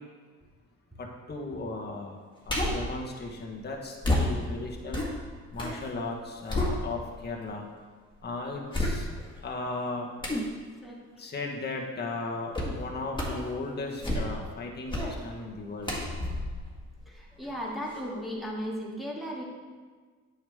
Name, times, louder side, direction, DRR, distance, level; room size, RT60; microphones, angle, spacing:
voice 1, 1.0-2.2 2.5-5.0 5.5-7.7 8.2-9.1 9.4-10.1 11.2-15.9, left 3 dB, 35° left, 0 dB, 1.3 m, -36 dB
sound 1, 2.5-2.9 4.0-5.8 6.2-7.3 7.8-7.9 8.7-9.4 10.2-10.5 12.5-12.8 13.1-13.5 13.9-14.5 14.9-15.2 15.8-17.5 17.9-18.0, left 1 dB, 15° left, 2.0 m, -30 dB
voice 2, 17.1-19.4, equal, ahead, -4 dB, 2.2 m, -36 dB
8.7 x 7.1 x 3.6 m, 1.5 s
cardioid pair, 90°, 30 cm